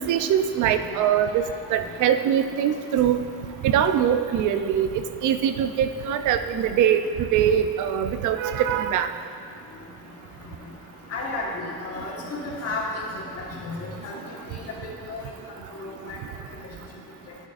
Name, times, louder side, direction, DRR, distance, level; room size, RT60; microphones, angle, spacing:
voice 1, 0.0-1.4 1.7-3.2 3.6-9.1, right 9 dB, 60° right, 10 dB, 0.5 m, -22 dB
voice 2, 11.1-15.3 15.8-16.2, left 2 dB, 45° left, -3 dB, 1.4 m, -33 dB
12.0 x 6.3 x 2.4 m, 2.6 s
cardioid pair, 140°, 34 cm